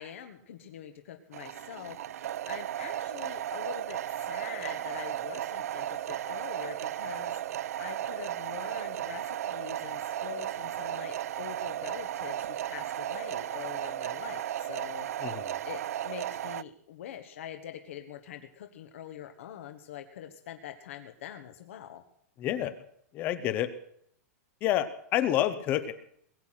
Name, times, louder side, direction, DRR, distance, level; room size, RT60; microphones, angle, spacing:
voice 1, 0.0-2.0 2.5-7.4 7.8-15.1 15.6-22.0, left 10 dB, 55° left, 6 dB, 1.4 m, -44 dB
sound 1, 1.3-16.6, right 11 dB, 65° right, 0.5 m, -35 dB
voice 2, 15.2-15.6 22.4-22.8 23.1-23.7 24.6-25.9, left 12 dB, 20° left, 13 dB, 0.9 m, -28 dB
21.5 x 8.3 x 5.9 m, 0.68 s
supercardioid pair, 180°, 9 cm